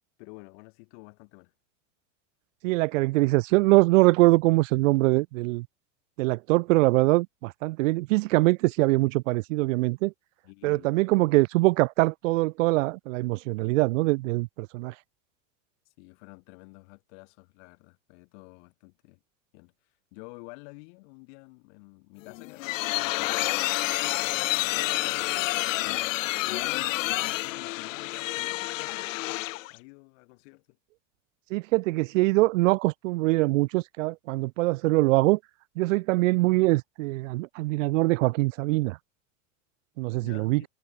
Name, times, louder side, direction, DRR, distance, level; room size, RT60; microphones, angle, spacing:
voice 1, 0.2-1.5 10.4-10.9 16.0-19.2 19.5-19.7 20.1-24.9 25.3-29.4 29.7-30.8 40.2-40.7, left 32 dB, 60° left, 5.0 m, -49 dB
voice 2, 2.6-5.6 6.2-10.1 10.6-14.9 31.5-35.4 35.8-39.0 40.0-40.6, right 21 dB, 75° right, 0.8 m, -23 dB
sound 1, 22.2-29.8, left 19 dB, 80° left, 1.4 m, -29 dB
supercardioid pair, 145°, 38 cm